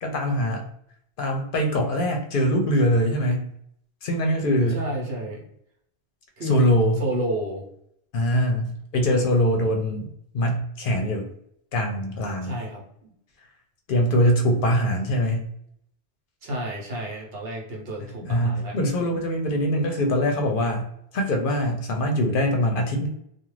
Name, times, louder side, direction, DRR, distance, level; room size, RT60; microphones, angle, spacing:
voice 1, 0.0-0.6 1.2-3.5 4.0-4.8 6.4-7.0 8.1-10.1 10.3-11.3 11.7-12.6 13.9-15.5 18.2-20.9 21.1-23.1, equal, 65° left, 3 dB, 0.7 m, -23 dB
voice 2, 4.7-5.4 6.4-6.7 7.0-7.6 12.4-13.1 16.4-18.8, right 1 dB, 75° right, -1 dB, 1.1 m, -30 dB
2.4 x 2.2 x 3.0 m, 0.71 s
omnidirectional pair, 1.0 m